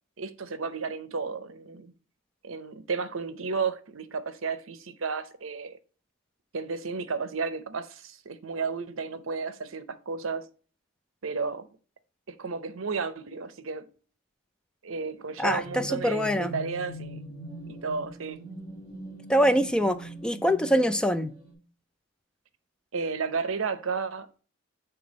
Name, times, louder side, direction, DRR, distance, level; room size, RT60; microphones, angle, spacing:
voice 1, 0.2-1.9 2.4-5.8 6.5-10.5 11.2-11.7 12.3-13.9 14.8-17.2 17.7-18.4 22.9-24.4, right 5 dB, 70° right, 0.7 m, -33 dB
sound 1, 15.0-21.5, right 1 dB, 20° right, 3.0 m, -42 dB
voice 2, 15.4-16.5 19.3-21.3, equal, 5° left, 0.3 m, -24 dB
6.9 x 3.4 x 5.2 m
head